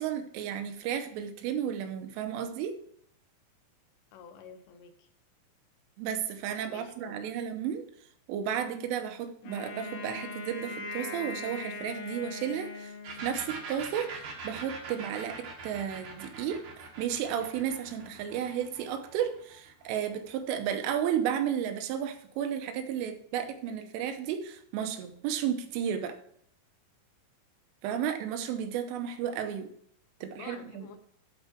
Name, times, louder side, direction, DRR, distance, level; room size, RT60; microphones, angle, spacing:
voice 1, 0.0-2.8 6.0-7.9 8.3-12.9 13.2-16.7 17.0-26.2 27.8-29.7 30.2-30.9, right 9 dB, 80° right, 8 dB, 3.2 m, -33 dB
voice 2, 4.1-5.1 6.6-7.2 30.2-31.0, left 6 dB, 80° left, 6 dB, 3.4 m, -49 dB
Wind instrument woodwind instrument, 9.4-13.6, left 3 dB, 55° left, 2.7 m, -40 dB
sound 1, 13.0-20.6, right 4 dB, 60° right, 2.1 m, -43 dB
13.5 x 4.6 x 4.5 m, 0.66 s
omnidirectional pair, 5.9 m